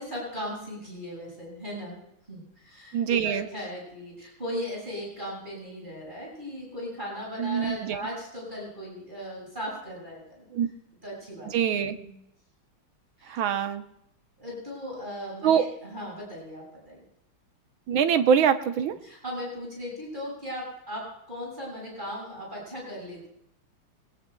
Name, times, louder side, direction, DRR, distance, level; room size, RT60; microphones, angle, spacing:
voice 1, 0.0-2.0 2.3-10.5 11.0-12.1 13.2-13.4 14.4-17.0 17.9-18.0 19.0-23.3, equal, 20° right, -5 dB, 6.8 m, -37 dB
voice 2, 2.9-3.5 7.4-8.0 10.5-10.7 11.4-12.0 13.3-13.8 15.4-15.7 17.9-19.0, right 8 dB, 75° right, 8 dB, 1.7 m, -24 dB
22.5 x 19.0 x 2.3 m, 0.79 s
omnidirectional pair, 2.3 m